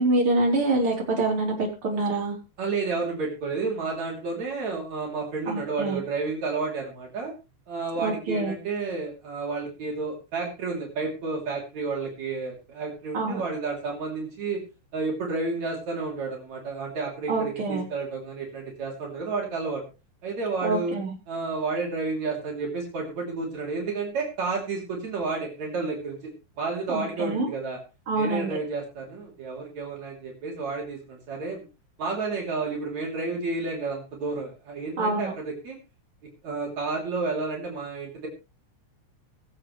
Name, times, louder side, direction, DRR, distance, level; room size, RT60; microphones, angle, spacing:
voice 1, 0.0-2.3 5.5-6.0 8.0-8.6 13.1-13.4 17.3-17.9 20.6-21.1 26.9-27.5 28.1-28.6 35.0-35.3, right 2 dB, 45° right, -1 dB, 4.8 m, -26 dB
voice 2, 2.6-7.3 7.7-14.6 14.9-19.8 20.2-20.9 21.3-26.3 26.6-27.8 28.1-31.7 32.0-35.8 36.4-38.3, right 4 dB, 70° right, -1 dB, 4.3 m, -31 dB
23.0 x 7.7 x 3.3 m, 0.29 s
omnidirectional pair, 3.4 m